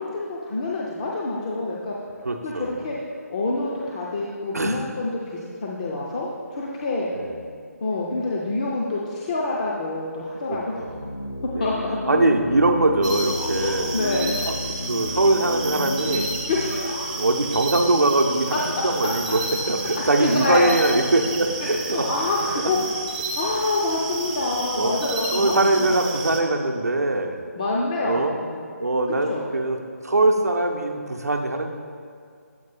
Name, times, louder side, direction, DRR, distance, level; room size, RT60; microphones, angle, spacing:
voice 1, 0.0-1.9 2.4-3.0 3.3-5.2 5.6-7.1 7.8-10.8 11.6-11.7 13.6-14.4 16.5-17.2 18.5-18.6 19.3-19.4 20.2-20.8 21.9-22.9 23.4-26.3 27.6-28.7 29.3-29.5, left 2 dB, 25° left, -4 dB, 0.5 m, -27 dB
voice 2, 2.2-2.9 4.5-4.9 7.2-7.4 10.5-11.1 11.6-11.7 12.1-13.9 14.5-14.6 14.9-16.3 17.2-19.4 19.7-22.1 22.5-22.7 24.8-25.0 25.3-27.4 28.0-28.4 28.8-29.8 30.0-31.8, right 2 dB, 70° right, 3 dB, 0.7 m, -22 dB
sound 1, 10.7-17.9, left 1 dB, 85° left, 0.9 m, -33 dB
sound 2, 13.0-26.4, right 2 dB, 30° right, 0.6 m, -32 dB
7.8 x 4.6 x 4.2 m, 2.3 s
figure-of-eight pair, 150°, 9 cm